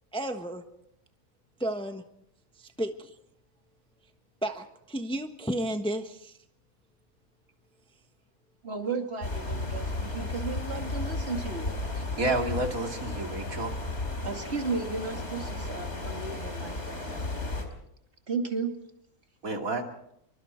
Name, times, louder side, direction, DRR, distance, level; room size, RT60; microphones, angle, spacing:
voice 1, 0.1-0.6 1.6-2.0 2.6-3.1 4.4-6.4, right 1 dB, 5° left, 6 dB, 1.1 m, -32 dB
voice 2, 8.6-11.8 14.2-17.3 18.3-18.7, right 4 dB, 40° right, 4 dB, 2.7 m, -34 dB
sound 1, 9.2-17.6, left 2 dB, 45° left, 4.1 m, -34 dB
voice 3, 12.2-13.8 19.4-19.8, right 2 dB, 65° right, 3 dB, 3.0 m, -30 dB
27.0 x 24.5 x 4.5 m, 0.75 s
omnidirectional pair, 1.6 m